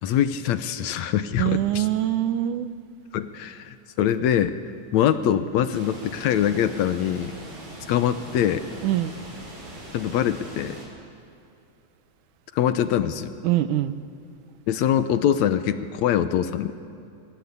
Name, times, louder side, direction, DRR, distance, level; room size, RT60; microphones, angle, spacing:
voice 1, 0.0-1.9 3.1-4.6 4.9-7.3 7.9-8.6 9.9-10.8 12.6-13.3 14.7-16.7, left 10 dB, 75° left, 11 dB, 2.1 m, -23 dB
voice 2, 1.4-2.7 8.8-9.1 13.4-14.0, right 13 dB, 90° right, 12 dB, 2.4 m, -23 dB
sound 1, 5.7-10.9, right 1 dB, 70° right, 7.2 m, -41 dB
27.5 x 23.5 x 8.3 m, 2.7 s
omnidirectional pair, 3.5 m